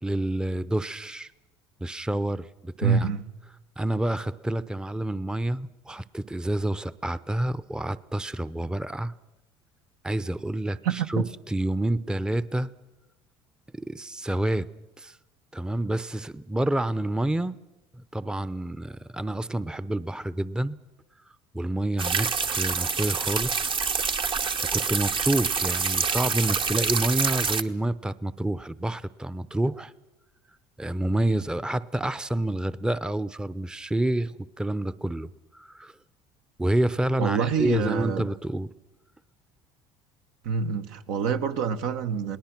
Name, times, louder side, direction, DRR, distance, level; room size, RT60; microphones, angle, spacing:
voice 1, 0.0-1.3 1.8-3.1 3.8-9.1 10.0-12.7 13.9-15.2 15.5-17.6 17.9-20.8 21.5-23.8 24.7-29.9 30.8-35.9 36.6-38.7, right 1 dB, 5° right, 0.7 m, -28 dB
voice 2, 2.8-3.2 10.8-11.2 37.2-38.3 40.4-42.4, right 6 dB, 75° right, 1.2 m, -26 dB
sound 1, 22.0-27.6, right 5 dB, 35° right, 0.9 m, -26 dB
28.5 x 19.0 x 6.0 m
hypercardioid pair, 70°, 15 cm